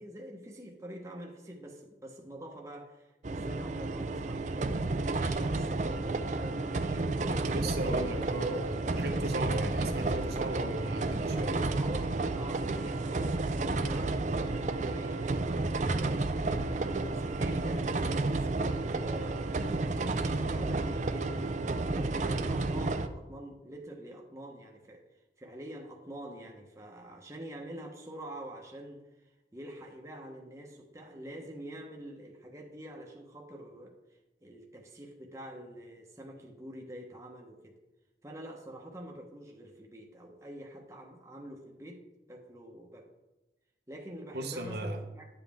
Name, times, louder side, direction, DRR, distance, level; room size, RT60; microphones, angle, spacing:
voice 1, 0.0-7.3 7.6-8.0 11.3-16.2 16.7-25.0 25.4-37.8 38.2-42.0 42.3-43.1 43.9-45.3, right 1 dB, 15° right, 0 dB, 1.0 m, -46 dB
sound 1, 3.2-23.1, right 2 dB, 40° right, 0.5 m, -31 dB
voice 2, 7.3-11.7 44.3-45.0, right 1 dB, 65° right, 3 dB, 1.0 m, -36 dB
11.5 x 7.4 x 3.5 m, 1.0 s
head